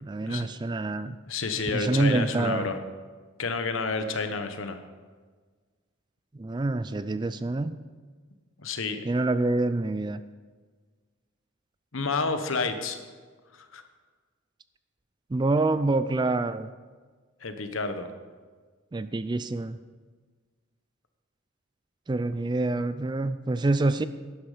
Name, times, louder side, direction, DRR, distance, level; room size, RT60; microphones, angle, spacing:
voice 1, 0.0-1.2 1.7-2.7 6.4-7.8 9.1-10.2 15.3-16.7 18.9-19.8 22.1-24.0, right 2 dB, 20° right, 13 dB, 0.3 m, -26 dB
voice 2, 1.3-2.8 3.4-4.8 8.6-9.0 11.9-13.0 13.5-13.8 17.4-18.1, left 4 dB, 70° left, 8 dB, 1.1 m, -30 dB
11.5 x 10.5 x 5.0 m, 1.5 s
head